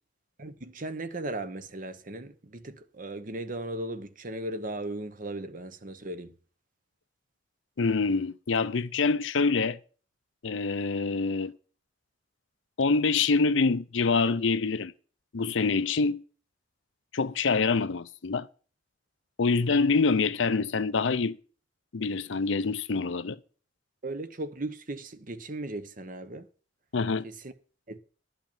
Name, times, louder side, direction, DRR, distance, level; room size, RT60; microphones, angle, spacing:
voice 1, 0.4-6.3 24.0-26.5 27.2-27.5 27.9-28.0, right 2 dB, 45° right, 1.0 m, -37 dB
voice 2, 7.8-9.8 10.4-11.5 12.8-14.9 15.3-16.2 17.1-18.5 19.4-21.4 21.9-23.4 26.9-27.2, left 4 dB, 75° left, 0.6 m, -25 dB
12.0 x 5.7 x 8.8 m
head